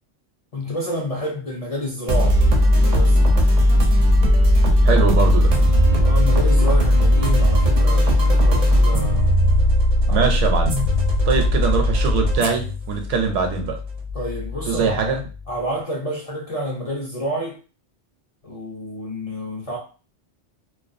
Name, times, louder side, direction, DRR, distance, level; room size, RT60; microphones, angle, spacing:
voice 1, 0.5-2.4 2.8-3.2 6.0-9.3 10.1-10.3 14.1-15.0 15.5-17.6 18.4-19.8, equal, 45° left, 0.4 m, -29 dB
sound 1, 2.1-15.5, equal, 50° right, 0.5 m, -17 dB
voice 2, 4.8-5.5 10.1-10.7 11.3-13.8 14.7-15.2, right 5 dB, 85° right, 0.9 m, -22 dB
2.3 x 2.2 x 2.5 m
omnidirectional pair, 1.2 m